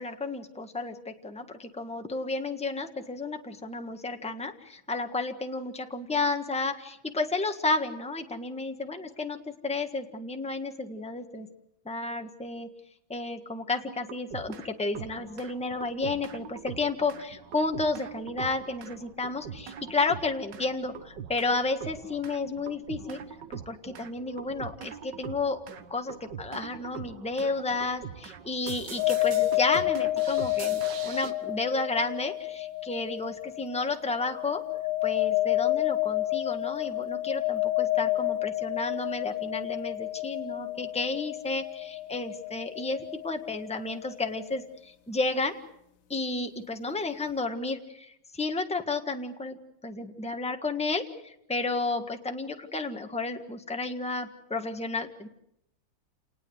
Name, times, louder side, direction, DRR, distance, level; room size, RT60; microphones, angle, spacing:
voice 1, 0.0-11.5 11.8-12.7 13.1-23.2 23.5-25.6 25.9-34.6 35.0-45.5 46.1-49.6 49.8-55.3, left 3 dB, 5° left, 5 dB, 1.3 m, -32 dB
sound 1, 13.7-14.7 14.9-31.3, right 7 dB, 65° right, 1.9 m, -43 dB
sound 2, 29.0-44.6, left 16 dB, 75° left, 1.9 m, -30 dB
28.0 x 19.5 x 8.0 m, 0.80 s
omnidirectional pair, 2.1 m